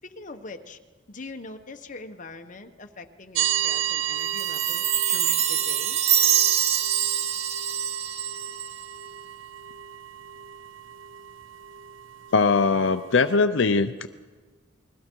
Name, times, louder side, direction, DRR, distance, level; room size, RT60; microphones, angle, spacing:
voice 1, 0.0-0.8 1.1-6.0, left 3 dB, 40° left, 6 dB, 1.2 m, -42 dB
sound 1, 3.3-13.4, right 12 dB, 80° right, 0.6 m, -33 dB
Chime, 4.4-8.8, right 10 dB, 35° right, 0.7 m, -24 dB
voice 2, 12.3-14.1, left 4 dB, 75° left, 9 dB, 0.6 m, -21 dB
29.0 x 21.5 x 4.7 m, 1.4 s
head